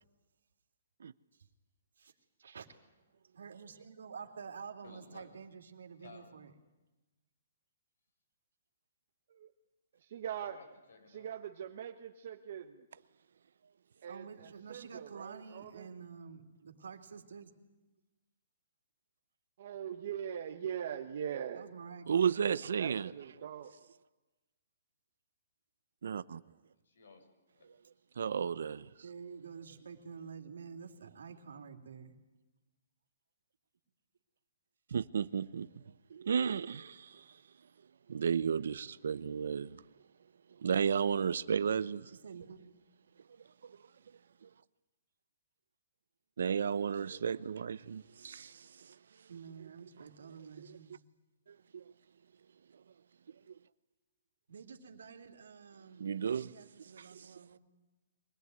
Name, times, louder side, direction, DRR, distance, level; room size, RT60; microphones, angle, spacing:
voice 1, 2.4-2.7 3.3-6.5 14.1-17.6 21.5-22.5 29.0-32.2 42.1-42.6 49.3-51.0 54.5-57.6, right 6 dB, 90° right, 2.9 m, -49 dB
voice 2, 4.8-5.3 6.0-6.3 10.4-11.3 26.8-27.7, left 4 dB, 80° left, 6.2 m, -56 dB
voice 3, 10.0-10.6 11.1-12.9 14.0-15.9 19.6-21.6 22.5-23.7, right 9 dB, 45° right, 1.2 m, -42 dB
voice 4, 22.1-23.1 26.0-26.4 28.2-28.9 34.9-35.7 36.1-37.2 38.1-39.8 40.6-42.1 43.6-43.8 44.4-44.5 46.4-48.9 51.5-51.8 53.5-53.6 56.0-56.5 57.1-57.2, right 7 dB, 70° right, 0.7 m, -33 dB
24.0 x 18.5 x 9.6 m
hypercardioid pair, 170°, 0 cm